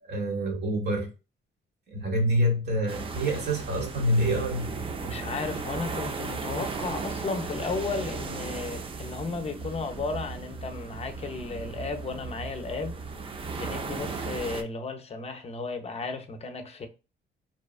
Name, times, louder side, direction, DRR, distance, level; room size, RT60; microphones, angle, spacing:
voice 1, 0.0-1.1 1.9-4.7, equal, 55° right, 1.0 m, -26 dB
sound 1, 2.9-14.6, right 4 dB, 25° right, 0.4 m, -36 dB
voice 2, 5.0-13.0 13.6-16.9, left 4 dB, 30° left, 0.5 m, -34 dB
2.7 x 2.3 x 2.3 m
cardioid pair, 90°, 20 cm